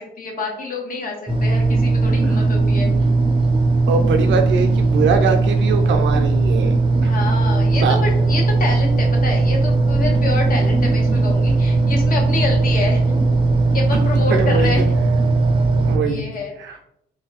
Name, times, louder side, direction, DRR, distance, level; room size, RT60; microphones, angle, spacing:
voice 1, 0.0-2.9 7.0-13.2 13.7-14.9 16.1-16.5, left 3 dB, 45° left, 0 dB, 1.0 m, -27 dB
sound 1, 1.3-16.0, right 3 dB, 25° right, 0.6 m, -17 dB
voice 2, 3.9-6.7 7.0-7.1 7.8-8.0 14.3-14.7 15.9-16.2 16.6-16.8, right 5 dB, 70° right, 5 dB, 0.6 m, -22 dB
2.7 x 2.3 x 4.0 m, 0.74 s
cardioid pair, 90°, 20 cm